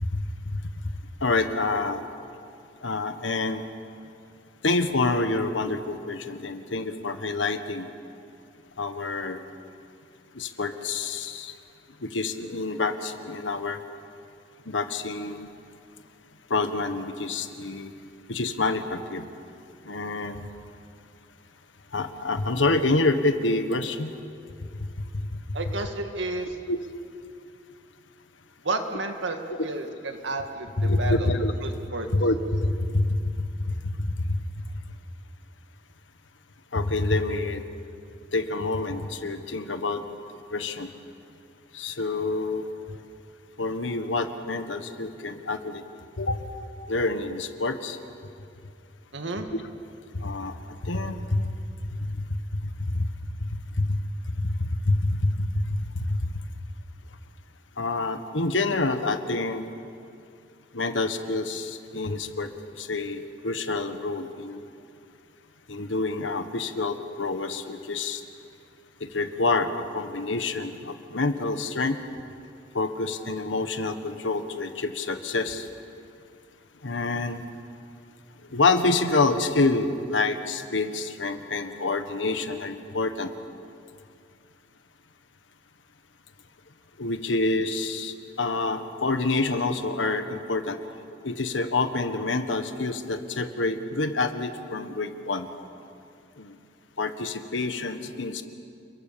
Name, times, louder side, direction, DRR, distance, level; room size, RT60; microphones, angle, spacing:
voice 1, 0.1-0.6 1.2-2.0 2.8-3.6 4.6-7.9 8.8-9.4 10.3-11.5 12.0-13.8 14.6-15.5 16.5-17.9 18.3-19.2 19.8-20.5 21.9-24.1 25.1-25.2 26.7-26.8 29.5-29.6 30.8-31.6 32.1-34.4 36.7-37.6 38.3-40.0 40.5-40.9 41.7-42.7 43.6-45.8 46.2-46.4 46.9-48.0 49.5-49.6 50.1-50.5 50.8-51.5 52.1-52.2 52.6-53.1 53.4-53.5 53.8-54.0 54.4-56.3 57.8-59.7 60.7-64.6 65.7-68.2 69.0-72.0 72.7-75.7 76.8-77.4 78.5-83.3 87.0-90.8 91.2-95.5 96.4-96.6 97.0-98.4, left 2 dB, 85° left, 8 dB, 1.5 m, -27 dB
voice 2, 25.5-26.6 28.6-31.3 31.6-32.1 49.1-49.5, right 2 dB, 75° right, 5 dB, 2.2 m, -31 dB
29.0 x 22.0 x 7.0 m, 2.5 s
head